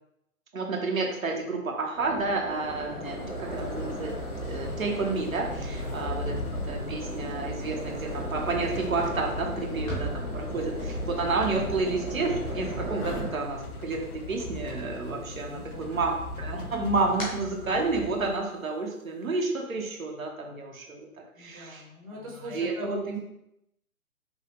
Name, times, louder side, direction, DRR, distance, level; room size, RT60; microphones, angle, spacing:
voice 1, 0.5-6.4 6.7-14.0 14.3-21.1 21.4-21.8 22.4-23.2, right 3 dB, 65° right, 1 dB, 0.9 m, -30 dB
sound 1, 1.9-13.3, right 1 dB, ahead, 0.6 m, -37 dB
sound 2, 3.1-18.4, left 2 dB, 85° left, 0.7 m, -38 dB
sound 3, 8.7-14.2 14.5-15.4 15.8-18.4, right 1 dB, 25° left, 1.1 m, -46 dB
voice 2, 9.5-10.0 15.5-16.2 21.3-23.0, left 2 dB, 25° right, -3 dB, 0.9 m, -43 dB
5.5 x 2.3 x 3.0 m, 0.83 s
figure-of-eight pair, 140°, 44 cm